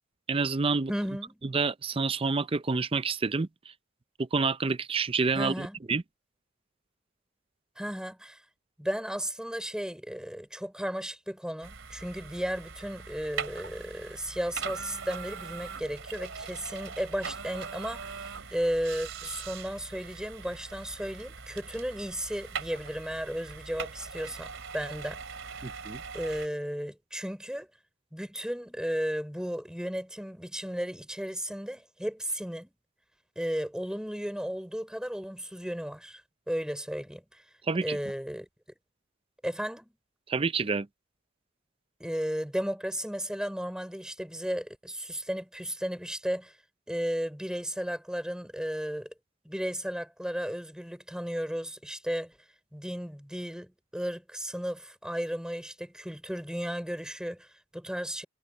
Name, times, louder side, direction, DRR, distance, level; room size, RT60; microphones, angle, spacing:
voice 1, 0.3-0.9 1.5-3.5 4.2-6.0 25.6-26.0 37.7-38.0 40.3-40.9, right 4 dB, 25° right, 0.5 m, -28 dB
voice 2, 0.9-1.4 5.3-5.8 7.7-8.4 8.8-25.2 25.5-25.8 26.1-27.7 28.1-32.7 33.3-36.2 36.5-37.4 37.8-38.5 39.4-39.9 42.0-46.6 46.9-49.1 49.4-52.4 52.7-58.2, equal, 5° right, 5.1 m, -34 dB
sound 1, 11.6-26.5, right 6 dB, 70° right, 3.0 m, -41 dB
head